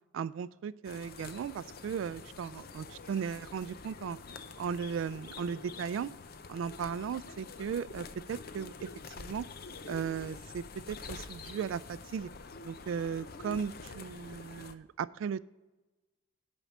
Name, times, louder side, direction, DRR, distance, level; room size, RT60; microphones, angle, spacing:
voice 1, 0.1-4.2 4.6-6.1 6.5-8.9 9.2-9.5 9.9-12.3 12.6-15.4, right 7 dB, 85° right, 17 dB, 0.3 m, -36 dB
sound 1, 0.8-14.8, left 4 dB, 50° left, 0.6 m, -47 dB
9.0 x 5.4 x 7.2 m, 1.1 s
head